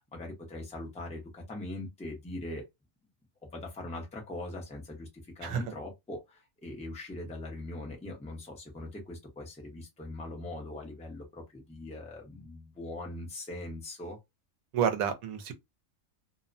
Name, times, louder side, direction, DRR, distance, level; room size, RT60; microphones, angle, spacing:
voice 1, 0.0-2.6 3.5-14.2, left 2 dB, 5° left, 0.6 m, -41 dB
voice 2, 14.7-15.5, right 8 dB, 80° right, 1.1 m, -29 dB
2.8 x 2.1 x 2.5 m
omnidirectional pair, 1.5 m